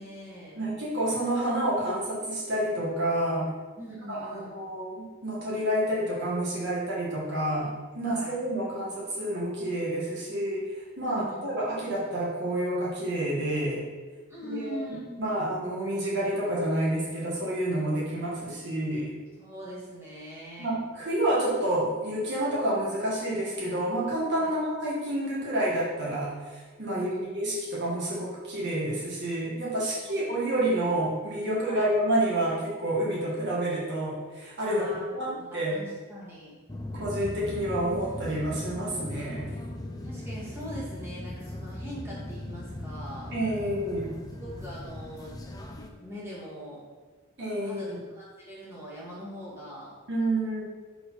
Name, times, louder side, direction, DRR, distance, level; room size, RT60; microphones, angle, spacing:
voice 1, 0.0-0.6 3.8-4.5 8.0-8.4 11.1-11.4 14.3-15.4 19.4-20.8 24.4-24.5 26.9-27.3 30.0-30.1 31.7-31.9 34.7-35.1 35.4-36.5 40.0-43.3 44.3-45.4 46.0-46.8 47.6-49.9, equal, 10° right, -8 dB, 2.4 m, -42 dB
voice 2, 0.6-3.5 4.1-7.7 7.9-10.6 11.0-13.8 14.5-19.1 20.6-34.8 35.1-35.8 36.9-39.4 43.3-44.1 47.4-48.0 50.1-50.6, right 1 dB, 50° right, -6 dB, 1.8 m, -29 dB
sound 1, 36.7-45.9, left 1 dB, 15° left, 0.6 m, -38 dB
6.6 x 5.0 x 5.7 m, 1.4 s
head